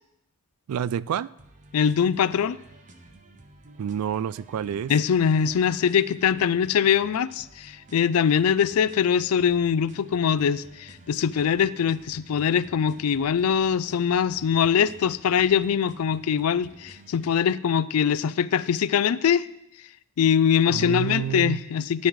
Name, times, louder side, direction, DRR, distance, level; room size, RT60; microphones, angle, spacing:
voice 1, 0.7-1.3 3.8-4.9 20.7-21.6, right 8 dB, 80° right, 19 dB, 0.3 m, -28 dB
sound 1, 1.4-17.4, right 2 dB, 35° right, 0.9 m, -51 dB
voice 2, 1.7-2.6 4.9-19.5 20.2-22.1, left 7 dB, 85° left, 18 dB, 0.4 m, -22 dB
13.5 x 9.6 x 3.1 m, 0.82 s
head